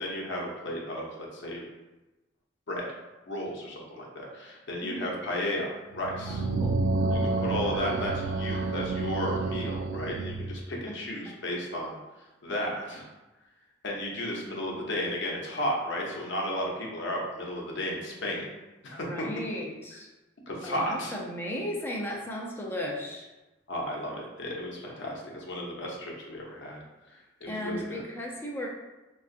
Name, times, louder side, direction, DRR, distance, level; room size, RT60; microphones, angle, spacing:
voice 1, 0.0-1.6 2.7-2.9 3.3-6.4 7.2-12.0 12.4-13.1 13.8-18.5 18.8-19.1 20.5-21.2 23.7-26.8 27.4-28.0, left 1 dB, 65° left, -2 dB, 0.7 m, -33 dB
sound 1, 5.9-10.6, right 3 dB, 65° right, 0.3 m, -29 dB
voice 2, 6.3-6.8 10.9-11.0 19.0-20.1 20.6-23.3 27.5-28.7, equal, 10° left, -3 dB, 0.5 m, -35 dB
3.7 x 2.4 x 2.5 m, 1.1 s
head